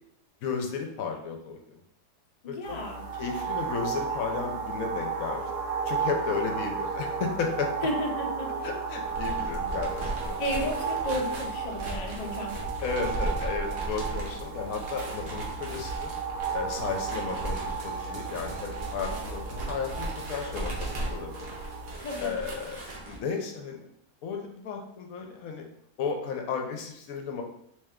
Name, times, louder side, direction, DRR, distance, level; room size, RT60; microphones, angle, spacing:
voice 1, 0.4-1.6 2.5-2.8 3.2-5.4 5.9-7.7 8.6-10.4 12.8-16.1 16.5-21.5 22.2-23.9 24.2-25.6 26.0-27.4, left 5 dB, 70° left, 3 dB, 1.0 m, -34 dB
voice 2, 2.4-3.1 7.8-8.7 10.4-12.6 22.0-22.3, equal, 55° left, 1 dB, 0.4 m, -33 dB
sound 1, 2.6-21.9, right 5 dB, 70° right, 1.1 m, -34 dB
sound 2, 9.0-23.2, right 1 dB, 45° right, 1.0 m, -37 dB
sound 3, 12.1-21.1, right 4 dB, 85° right, 1.2 m, -46 dB
3.3 x 3.1 x 3.5 m, 0.71 s
omnidirectional pair, 1.6 m